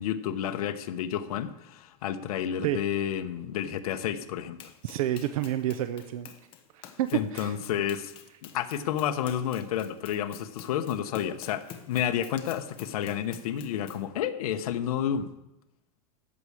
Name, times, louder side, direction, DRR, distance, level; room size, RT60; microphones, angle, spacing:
voice 1, 0.0-4.6 7.1-8.1 8.4-15.3, left 9 dB, 75° left, 8 dB, 1.0 m, -30 dB
Run, 4.6-14.1, left 9 dB, 30° left, 1.1 m, -48 dB
voice 2, 4.8-6.3 6.7-7.5, right 12 dB, 70° right, 10 dB, 0.7 m, -29 dB
14.0 x 4.8 x 8.6 m, 0.91 s
supercardioid pair, 170°, 19 cm